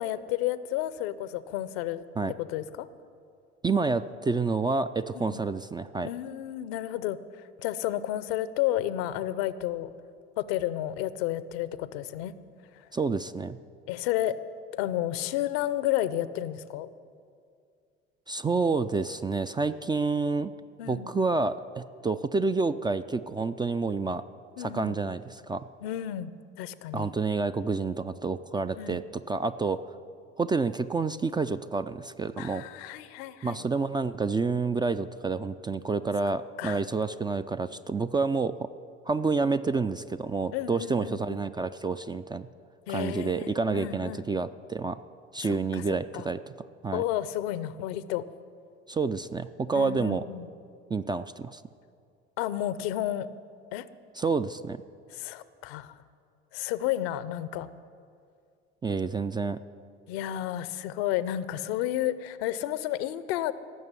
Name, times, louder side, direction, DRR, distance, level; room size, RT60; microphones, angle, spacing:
voice 1, 0.0-2.0 2.4-2.9 5.1-5.4 6.0-9.9 10.4-12.3 12.7-12.9 13.9-14.4 14.7-16.9 20.8-21.1 24.6-25.0 25.8-26.3 26.6-27.1 28.7-29.0 32.4-33.6 36.6-36.8 40.5-41.4 42.9-44.3 45.4-45.8 46.1-46.3 46.9-48.2 49.7-50.5 52.4-53.3 53.7-53.9 55.1-56.0 56.5-57.7 60.1-63.5, left 13 dB, 65° left, 15 dB, 0.7 m, -31 dB
voice 2, 3.6-6.1 12.9-13.6 18.3-20.5 20.9-24.2 24.6-25.7 26.9-29.0 29.3-29.8 30.4-32.6 33.4-38.7 39.1-42.5 42.9-45.0 45.3-46.4 46.8-47.0 48.9-50.2 50.9-51.6 54.2-54.8 58.8-59.6, right 4 dB, 15° right, 10 dB, 0.3 m, -29 dB
17.0 x 6.7 x 8.2 m, 2.3 s
hypercardioid pair, 65°, 33 cm